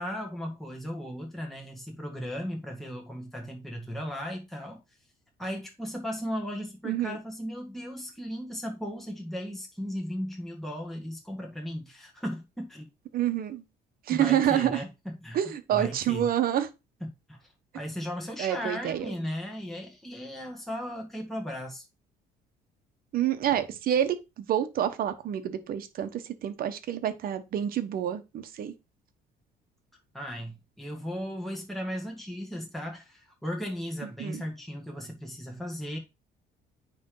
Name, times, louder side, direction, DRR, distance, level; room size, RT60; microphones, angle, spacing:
voice 1, 0.0-4.8 5.4-12.9 14.1-15.4 15.7-16.3 17.0-21.8 30.1-36.0, equal, ahead, 1.8 m, -36 dB
voice 2, 6.8-7.2 13.1-13.6 14.1-14.8 15.3-16.7 18.4-19.1 23.1-28.7 34.2-34.4, right 11 dB, 60° right, 1.0 m, -28 dB
9.5 x 3.4 x 3.9 m
cardioid pair, 110°, 17 cm